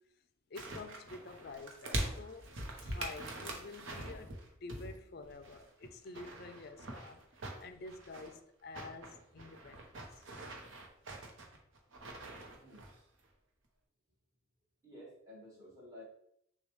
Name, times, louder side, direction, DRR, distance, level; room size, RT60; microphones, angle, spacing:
voice 1, 0.5-2.5 2.8-7.2 7.6-10.2 12.3-12.4, left 3 dB, 50° left, 0.4 m, -49 dB
sound 1, 0.5-5.0 5.2-8.4 8.7-13.0 13.2-13.3, right 1 dB, 70° right, 0.8 m, -44 dB
voice 2, 14.8-16.0, left 1 dB, 15° right, 1.4 m, -53 dB
6.3 x 2.3 x 3.1 m
head